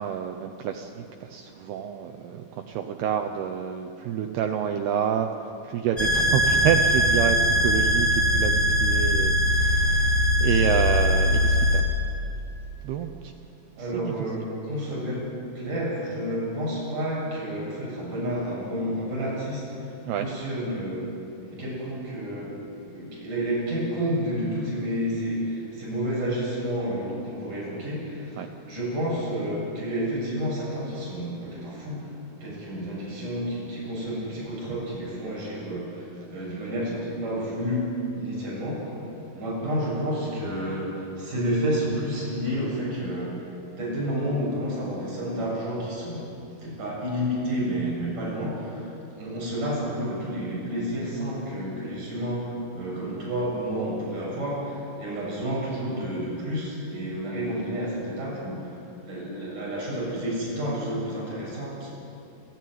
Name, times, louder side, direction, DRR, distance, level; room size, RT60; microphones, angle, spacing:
voice 1, 0.0-12.0 12.8-13.3 13.9-14.1 14.5-14.6 20.1-20.3 28.4-28.5, right 8 dB, 85° right, 5 dB, 2.3 m, -28 dB
sound 1, 6.0-11.8, equal, 25° left, 1.2 m, -21 dB
voice 2, 13.8-15.3 15.6-19.9 20.2-21.1 21.4-32.1 32.4-39.0 39.4-43.5 43.7-46.3 46.6-48.9 49.2-62.0, equal, 40° right, -5 dB, 8.8 m, -30 dB
28.5 x 14.5 x 9.4 m, 2.8 s
omnidirectional pair, 5.9 m